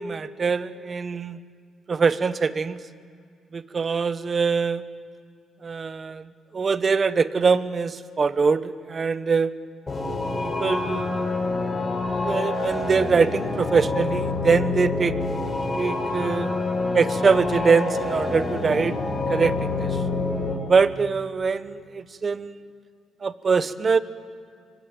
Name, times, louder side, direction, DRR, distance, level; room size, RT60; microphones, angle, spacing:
voice 1, 0.0-1.4 1.9-2.8 3.5-4.8 5.6-9.5 10.4-11.2 12.1-15.2 15.8-16.5 16.9-19.0 19.3-20.0 20.7-22.6 23.2-24.0, right 5 dB, 40° right, 14 dB, 1.1 m, -23 dB
sound 1, 9.9-20.5, left 3 dB, 30° left, 7.0 m, -27 dB
24.5 x 24.0 x 9.1 m, 2.2 s
cardioid pair, 90°, 0 cm